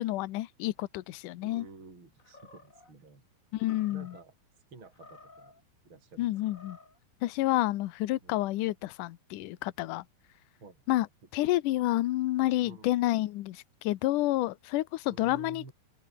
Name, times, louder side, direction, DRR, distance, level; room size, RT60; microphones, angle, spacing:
voice 1, 0.0-1.7 3.5-4.1 6.2-6.8 7.2-10.0 10.9-11.1 11.3-15.7, left 16 dB, 75° left, 2.0 m, -29 dB
voice 2, 1.4-3.2 3.9-4.3 4.7-5.5 5.8-6.3 8.2-8.4 10.6-10.8 11.4-11.5 12.6-12.9 15.1-15.7, right 3 dB, 30° right, 5.8 m, -51 dB
Animal, 2.2-2.9 3.6-4.2 4.9-5.6 6.3-7.0, left 3 dB, 20° left, 4.0 m, -54 dB
open air
omnidirectional pair, 4.8 m